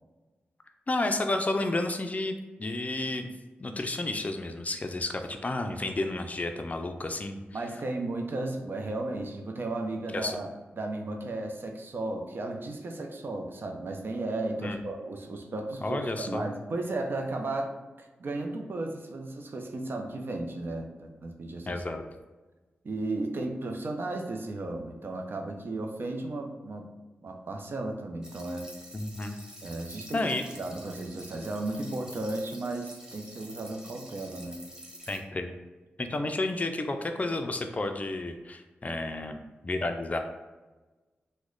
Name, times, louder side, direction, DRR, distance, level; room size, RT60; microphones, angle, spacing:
voice 1, 0.9-2.3 2.6-3.3 3.6-7.4 10.1-10.4 14.6-14.8 15.8-16.5 21.7-22.0 28.9-29.4 30.1-30.4 35.1-35.5 36.0-40.2, left 2 dB, 35° left, 6 dB, 0.4 m, -31 dB
voice 2, 7.5-10.5 10.7-21.8 22.8-26.9 27.2-28.7 29.6-30.3 30.6-34.6, right 2 dB, 60° right, 3 dB, 0.5 m, -34 dB
sound 1, 28.2-35.2, equal, 20° right, 0.8 m, -48 dB
3.0 x 2.1 x 3.7 m, 1.2 s
cardioid pair, 45°, 4 cm